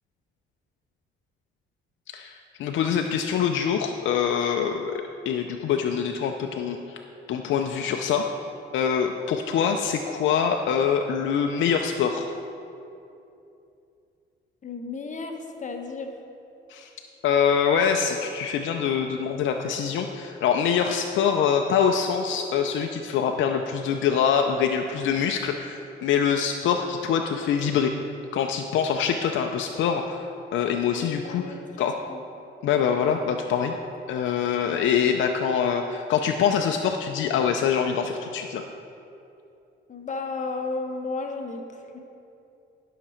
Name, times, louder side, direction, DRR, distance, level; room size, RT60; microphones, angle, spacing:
voice 1, 2.1-7.0 7.3-8.3 8.7-12.3 16.7-16.9 17.2-27.9 28.3-32.0 32.6-33.8 34.1-38.6, left 7 dB, 75° left, 4 dB, 0.5 m, -24 dB
voice 2, 14.6-16.1 31.2-32.2 39.9-42.0, left 3 dB, 40° left, 4 dB, 1.0 m, -33 dB
11.0 x 5.9 x 4.4 m, 2.7 s
cardioid pair, 90°, 20 cm